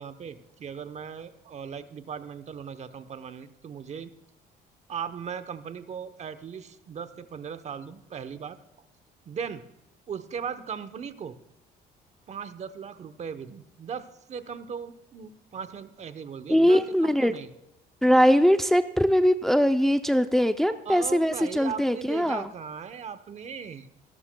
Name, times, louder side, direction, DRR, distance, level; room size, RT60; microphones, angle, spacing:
voice 1, 0.0-4.1 4.9-8.6 9.3-9.6 10.1-11.4 12.3-17.5 20.8-23.9, right 7 dB, 40° right, 12 dB, 0.9 m, -38 dB
voice 2, 16.5-17.3 18.0-22.4, equal, ahead, 8 dB, 0.5 m, -21 dB
26.5 x 12.5 x 2.3 m, 0.84 s
cardioid pair, 110°, 17 cm